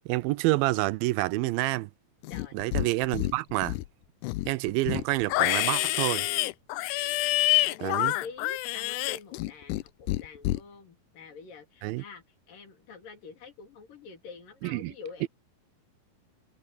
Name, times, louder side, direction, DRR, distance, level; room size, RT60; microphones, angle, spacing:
voice 1, 0.1-1.9 2.5-3.8 4.5-6.3 7.8-8.1 11.8-12.0 14.6-14.9 15.2-15.3, right 19 dB, 85° right, 2.3 m, -28 dB
Livestock farm animals working animals, 2.2-2.9 3.1-3.9 4.2-9.8 10.1-10.6, left 19 dB, 85° left, 1.8 m, -27 dB
voice 2, 7.4-15.3, left 5 dB, 70° left, 4.8 m, -46 dB
omnidirectional pair, 4.2 m